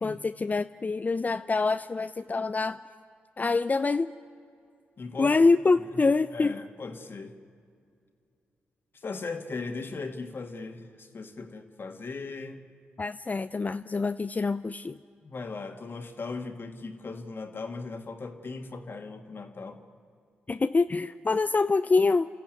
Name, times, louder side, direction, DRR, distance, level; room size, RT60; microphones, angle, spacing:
voice 1, 0.0-2.8 3.4-4.1 5.2-6.5 13.0-15.0 20.5-22.3, left 3 dB, 35° left, 11 dB, 0.5 m, -25 dB
voice 2, 5.0-5.4 6.3-7.3 8.9-12.6 15.2-19.8, left 4 dB, 50° left, 5 dB, 2.0 m, -38 dB
28.5 x 13.5 x 9.1 m, 2.4 s
supercardioid pair, 40°, 5 cm